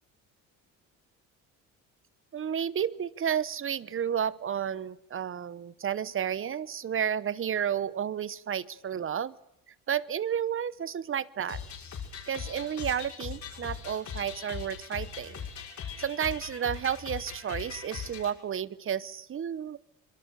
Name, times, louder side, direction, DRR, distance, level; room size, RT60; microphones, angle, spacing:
voice 1, 2.3-9.4 9.9-11.6 12.3-15.4 16.0-19.8, right 8 dB, 35° right, 19 dB, 0.9 m, -31 dB
sound 1, 11.5-18.3, left 7 dB, 55° left, 6.4 m, -40 dB
25.5 x 23.0 x 6.8 m, 0.83 s
cardioid pair, 105°, 34 cm